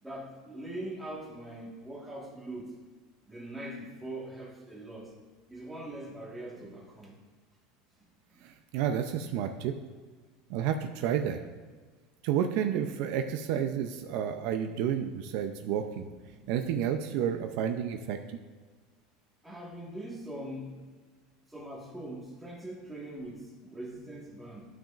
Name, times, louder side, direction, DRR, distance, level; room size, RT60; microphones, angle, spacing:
voice 1, 0.0-2.8 3.3-5.1 5.5-7.1 8.3-8.4 16.3-16.5 19.4-20.8 21.5-24.6, right 1 dB, 5° right, -4 dB, 1.5 m, -42 dB
voice 2, 8.4-9.7 10.5-11.4 12.2-16.1 16.5-18.2, right 9 dB, 60° right, 6 dB, 0.5 m, -30 dB
12.5 x 5.9 x 2.5 m, 1.4 s
supercardioid pair, 155°, 0 cm